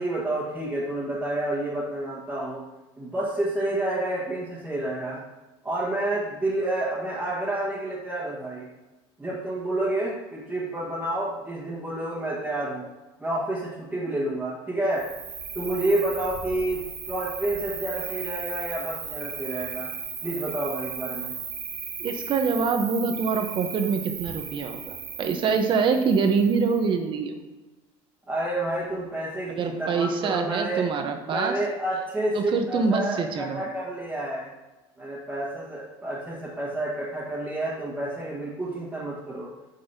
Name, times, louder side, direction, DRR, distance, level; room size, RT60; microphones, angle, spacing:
voice 1, 0.0-2.6 3.0-5.2 5.6-8.7 9.2-12.9 13.2-15.1 15.5-16.8 17.1-19.9 20.2-21.3 28.3-30.8 31.2-32.4 32.7-34.5 35.0-39.5, right 1 dB, 10° right, -8 dB, 1.5 m, -29 dB
Cricket, 14.9-26.9, right 6 dB, 70° right, 2.3 m, -36 dB
voice 2, 22.0-27.4 29.5-31.5 32.3-33.7, right 5 dB, 40° right, 6 dB, 0.9 m, -25 dB
8.8 x 5.4 x 2.8 m, 1.1 s
cardioid pair, 125°, 13 cm